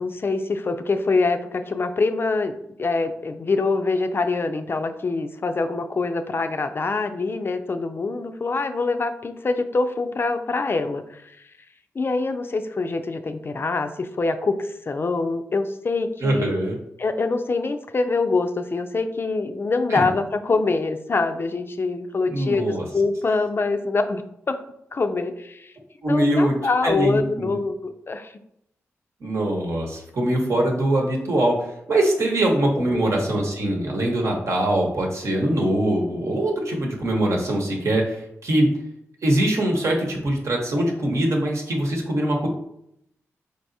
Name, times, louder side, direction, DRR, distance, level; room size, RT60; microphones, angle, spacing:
voice 1, 0.0-11.4 12.0-16.5 17.0-24.6 24.9-25.7 26.1-28.3 32.9-33.1, left 3 dB, 45° left, 8 dB, 0.4 m, -24 dB
voice 2, 16.2-16.8 19.9-20.0 22.3-22.8 26.0-26.6 26.8-27.5 29.2-31.6 31.9-38.7 39.2-42.5, right 1 dB, 60° right, 1 dB, 1.0 m, -22 dB
4.0 x 3.4 x 2.7 m, 0.77 s
cardioid pair, 50°, 6 cm